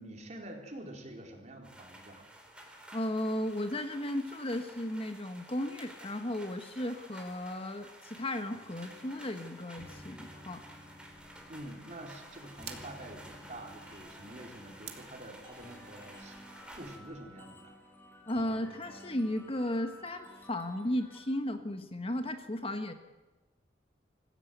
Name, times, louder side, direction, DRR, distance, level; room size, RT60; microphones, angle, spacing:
voice 1, 0.0-2.3 11.5-17.8, right 1 dB, 40° right, 2 dB, 4.2 m, -47 dB
sound 1, 1.6-17.0, right 1 dB, 5° right, 4.2 m, -52 dB
voice 2, 2.9-10.6 18.3-22.9, left 1 dB, 30° left, 7 dB, 1.4 m, -35 dB
sound 2, 8.5-21.2, equal, 10° left, 4.7 m, -54 dB
sound 3, 11.0-17.4, right 9 dB, 65° right, 2.6 m, -54 dB
26.0 x 16.0 x 8.2 m, 1.2 s
head